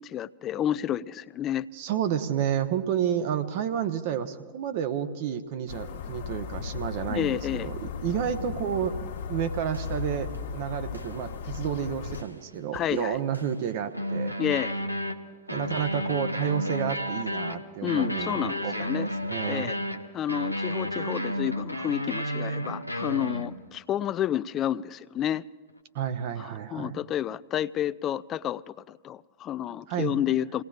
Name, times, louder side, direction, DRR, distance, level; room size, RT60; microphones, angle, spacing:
voice 1, 0.0-1.7 7.1-7.7 12.7-13.2 14.4-14.7 17.8-19.1 19.5-19.8 20.1-25.4 26.4-30.6, left 11 dB, 30° left, 18 dB, 0.4 m, -30 dB
voice 2, 1.7-14.3 15.5-19.7 25.9-27.0 29.9-30.3, right 9 dB, 50° right, 8 dB, 1.0 m, -30 dB
sound 1, 5.7-12.2, left 6 dB, 60° left, 1.4 m, -36 dB
sound 2, 9.2-9.3 9.7-10.0 10.3-10.5 10.9-11.2 11.5-11.7 12.1-12.4 12.7-13.6 13.9-23.8, equal, 90° left, 0.7 m, -32 dB
29.0 x 17.5 x 2.4 m, 1.4 s
figure-of-eight pair, 90°, 0 cm